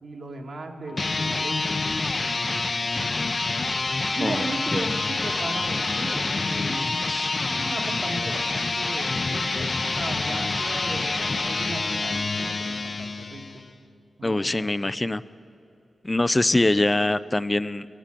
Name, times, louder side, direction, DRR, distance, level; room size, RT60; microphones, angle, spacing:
voice 1, 0.0-1.9 4.1-7.0 7.4-13.6 14.2-14.9, right 2 dB, 65° right, 3 dB, 1.6 m, -36 dB
sound 1, 0.9-13.6, left 3 dB, 45° left, 0.7 m, -27 dB
voice 2, 4.2-4.8 6.8-7.5 14.2-15.2 16.0-17.9, left 2 dB, 20° left, 15 dB, 0.3 m, -24 dB
14.5 x 11.5 x 7.4 m, 2.8 s
wide cardioid pair, 85°, 0 cm